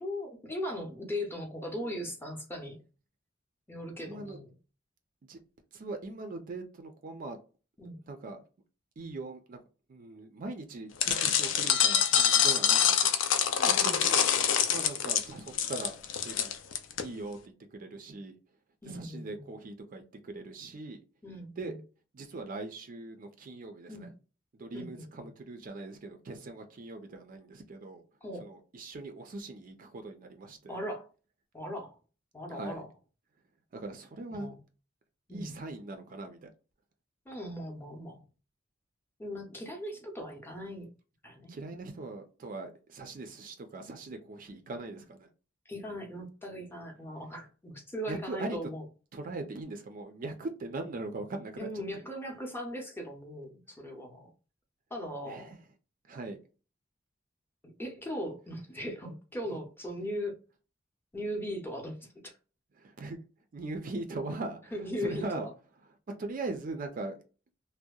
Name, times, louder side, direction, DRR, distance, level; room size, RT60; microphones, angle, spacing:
voice 1, 0.0-2.8 3.7-4.5 7.8-8.0 13.6-14.0 18.8-19.6 21.2-21.8 23.9-24.1 24.7-25.3 28.2-28.5 30.7-31.1 31.5-32.0 32.3-32.9 34.3-34.6 35.3-35.5 37.3-38.2 39.2-40.9 41.2-41.5 45.7-48.8 51.6-54.3 54.9-55.6 57.6-60.4 61.1-62.3 64.7-65.5, equal, 10° left, 0.6 m, -39 dB
voice 2, 4.0-4.4 5.3-5.4 5.7-7.4 8.1-8.4 9.0-9.6 9.9-13.1 13.7-14.2 14.7-16.5 17.0-18.4 18.8-21.0 21.6-21.7 22.1-24.1 24.6-28.0 28.4-30.8 32.5-32.8 33.7-34.5 35.3-36.5 41.5-45.3 48.1-48.6 49.1-51.7 55.3-55.5 56.1-56.4 62.8-63.2 63.5-64.6 65.0-65.5 66.1-67.2, right 2 dB, 45° right, 0.4 m, -40 dB
sound 1, 11.0-17.0, left 8 dB, 75° left, 0.4 m, -25 dB
2.7 x 2.0 x 2.2 m
head